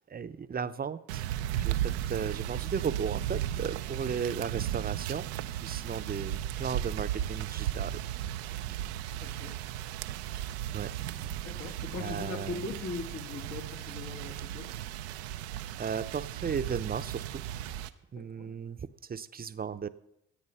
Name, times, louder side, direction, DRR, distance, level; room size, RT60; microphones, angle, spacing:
voice 1, 0.1-1.3 1.6-5.3 5.6-8.0 8.6-8.7 10.7-10.9 11.2-12.6 15.7-17.4 18.1-19.9, right 6 dB, 30° right, 13 dB, 0.7 m, -36 dB
sound 1, 1.1-17.9, right 12 dB, 90° right, 0.5 m, -35 dB
voice 2, 9.2-9.6 11.4-14.7 18.2-18.6, left 4 dB, 55° left, 5 dB, 1.8 m, -40 dB
13.5 x 8.7 x 5.6 m, 0.81 s
hypercardioid pair, 55°, 32 cm